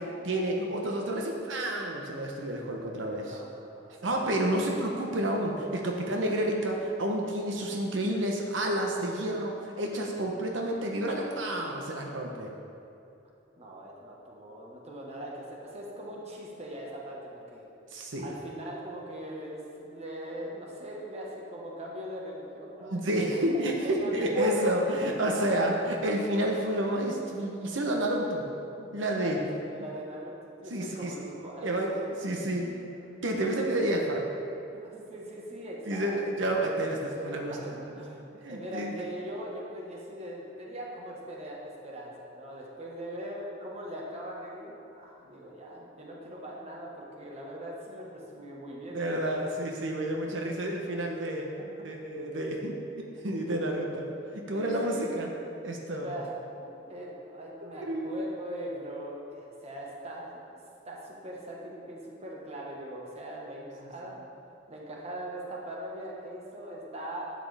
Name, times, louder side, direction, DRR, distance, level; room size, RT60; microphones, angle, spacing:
voice 1, 0.0-3.4 4.0-12.5 17.9-18.3 22.8-28.4 28.8-29.4 30.7-31.3 31.6-32.8 33.2-34.3 35.9-38.0 38.3-38.9 48.9-51.5 51.8-55.3 55.6-56.2 57.6-58.2, right 1 dB, 85° right, 1 dB, 0.9 m, -30 dB
voice 2, 3.2-4.6 13.6-17.7 18.2-23.4 23.8-25.6 29.2-32.3 33.5-33.6 34.7-36.2 37.1-38.2 38.5-49.3 50.3-50.4 51.6-51.9 53.5-53.6 54.1-55.2 56.0-56.3 56.6-60.4 60.8-64.2 64.7-67.2, right 1 dB, 35° right, -3 dB, 1.4 m, -41 dB
11.0 x 7.8 x 3.4 m, 2.7 s
head